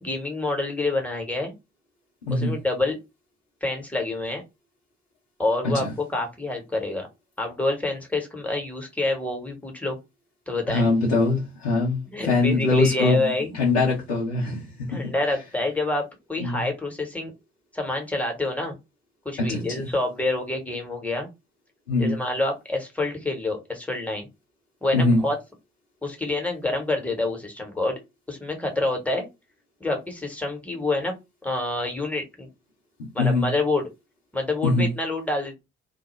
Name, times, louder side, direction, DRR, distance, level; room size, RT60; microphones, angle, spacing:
voice 1, 0.0-1.5 2.3-3.0 3.6-4.4 5.4-7.1 7.4-10.0 10.5-10.9 12.1-13.5 14.9-17.3 17.7-18.8 19.2-21.3 22.0-24.3 24.8-25.4 26.0-28.0 28.3-29.3 29.8-31.1 31.4-32.5 33.1-33.9 34.3-35.5, left 2 dB, 5° left, 1.1 m, -27 dB
voice 2, 10.7-15.0 16.4-16.6 19.4-19.6 21.9-22.2 24.9-25.2 33.2-33.5 34.6-34.9, left 3 dB, 85° left, 0.7 m, -22 dB
2.3 x 2.1 x 3.1 m
figure-of-eight pair, 40°, 31 cm